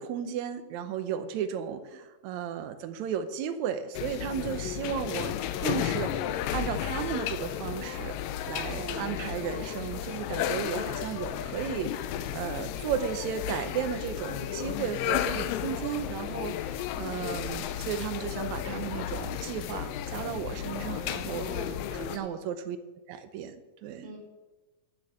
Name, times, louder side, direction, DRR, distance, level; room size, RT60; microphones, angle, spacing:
voice 1, 0.0-21.5 21.9-22.8 23.1-24.1, right 8 dB, 75° right, 10 dB, 1.7 m, -34 dB
sound 1, 3.9-22.2, left 10 dB, 80° left, 2.3 m, -33 dB
voice 2, 8.6-9.2 16.9-17.2 21.3-22.3 24.0-24.2, right 2 dB, 20° right, -2 dB, 2.8 m, -42 dB
11.5 x 7.2 x 7.8 m, 1.2 s
omnidirectional pair, 4.1 m